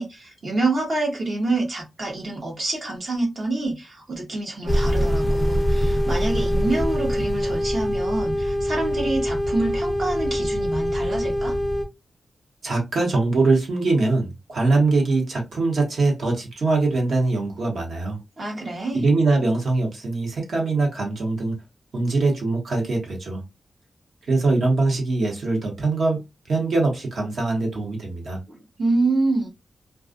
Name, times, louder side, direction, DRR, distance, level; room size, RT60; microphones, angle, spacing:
voice 1, 0.0-11.5 18.4-19.0 28.5-29.5, right 2 dB, 50° right, 0.8 m, -27 dB
sound 1, 4.7-11.9, equal, 15° left, 0.4 m, -23 dB
voice 2, 12.6-18.2 18.9-21.5 21.9-23.4 24.3-26.2 26.5-28.4, right 3 dB, 70° right, 1.1 m, -22 dB
2.4 x 2.3 x 2.5 m
wide cardioid pair, 130°, 0 cm